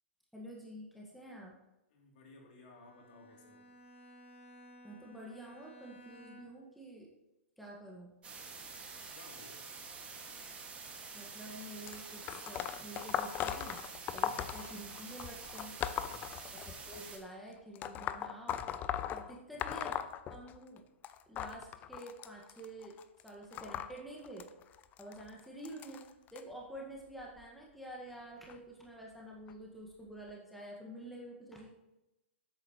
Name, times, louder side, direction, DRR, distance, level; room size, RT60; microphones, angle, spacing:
voice 1, 0.3-1.5 4.8-7.1 7.6-8.1 11.1-13.8 14.1-15.8 16.5-18.6 19.1-20.0 20.3-20.8 21.3-22.9 23.2-24.5 25.0-26.0 26.3-31.7, right 1 dB, ahead, -2 dB, 1.7 m, -48 dB
voice 2, 1.9-3.7 9.1-9.6 10.1-10.2 14.1-14.5 16.0-16.3 19.2-19.6, left 2 dB, 50° left, 0 dB, 3.0 m, -58 dB
Bowed string instrument, 2.7-6.8, equal, 65° left, 1.7 m, -57 dB
sound 1, 8.2-17.2, right 4 dB, 15° right, 2.0 m, -48 dB
sound 2, 11.9-17.0 17.8-20.8 21.0-26.4 27.2-27.4 28.5-28.6 29.5-29.6 30.3-30.4, left 10 dB, 25° left, 0.5 m, -39 dB
12.5 x 8.7 x 3.1 m, 0.95 s
hypercardioid pair, 115°, 7 cm